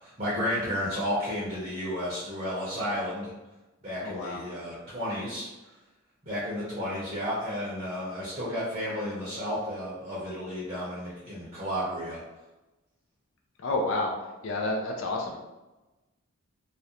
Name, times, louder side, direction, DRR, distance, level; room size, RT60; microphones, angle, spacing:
voice 1, 0.0-3.3 3.8-5.5 6.2-12.2, equal, 30° right, -8 dB, 0.6 m, -32 dB
voice 2, 4.0-4.4 13.6-14.1 14.4-15.4, left 2 dB, 65° left, 0 dB, 0.4 m, -29 dB
2.4 x 2.0 x 2.8 m, 1.1 s
head